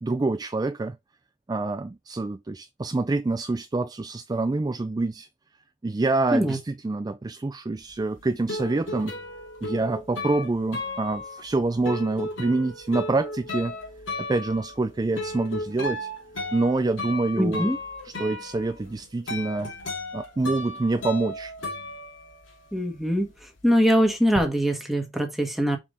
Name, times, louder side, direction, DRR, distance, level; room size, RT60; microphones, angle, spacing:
voice 1, 0.0-1.0 1.5-5.3 5.8-9.1 9.6-13.8 14.2-16.1 16.5-17.6 18.2-19.7 20.1-21.5, right 2 dB, 20° right, 0.3 m, -26 dB
sound 1, 7.9-22.7 23.0-24.4, left 2 dB, 90° left, 2.5 m, -35 dB
voice 2, 17.4-17.8 22.7-25.8, equal, ahead, 1.5 m, -23 dB
5.6 x 4.8 x 4.1 m
head